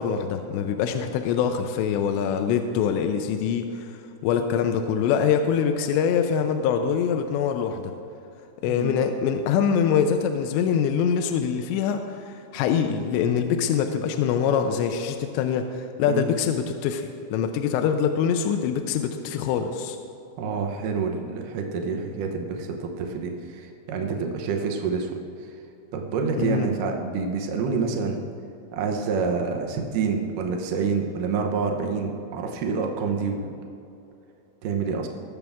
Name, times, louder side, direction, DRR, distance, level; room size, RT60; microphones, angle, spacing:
voice 1, 0.0-7.9 8.6-20.0 26.4-26.7, left 7 dB, 80° left, 6 dB, 2.8 m, -24 dB
voice 2, 20.4-25.5 25.9-28.2 28.7-33.5 34.6-35.1, right 5 dB, 85° right, 2 dB, 1.8 m, -27 dB
21.5 x 7.1 x 3.6 m, 2.8 s
omnidirectional pair, 5.2 m